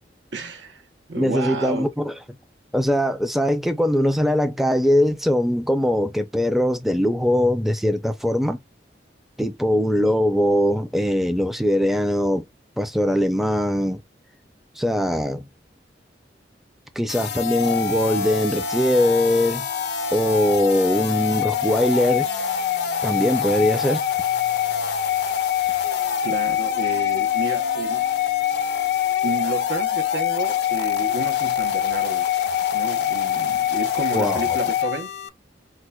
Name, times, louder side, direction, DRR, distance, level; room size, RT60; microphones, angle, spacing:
voice 1, 0.3-0.8 1.1-1.9 26.2-28.1 28.5-28.7 29.2-32.3 32.7-35.1, right 3 dB, 85° right, 0.7 m, -31 dB
voice 2, 1.2-2.1 2.7-8.6 9.4-12.4 12.8-14.0 14.8-15.5 17.0-19.7 20.1-22.3 23.0-24.0 34.1-34.6, equal, ahead, 0.4 m, -21 dB
sound 1, 17.1-35.3, left 9 dB, 70° left, 0.4 m, -24 dB
4.4 x 2.1 x 2.2 m
head